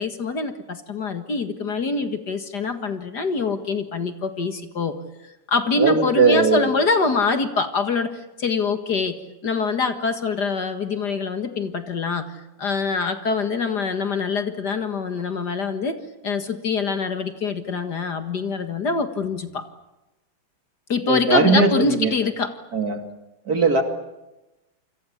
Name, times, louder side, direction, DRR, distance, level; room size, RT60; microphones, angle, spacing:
voice 1, 0.0-4.9 5.5-9.2 9.4-12.3 12.6-16.0 16.2-19.6 20.9-22.5, left 4 dB, 50° left, 8 dB, 2.2 m, -24 dB
voice 2, 5.8-6.7 21.1-22.1 22.7-23.0 23.5-23.8, right 3 dB, 45° right, 5 dB, 3.0 m, -19 dB
28.0 x 26.0 x 7.2 m, 0.99 s
omnidirectional pair, 2.4 m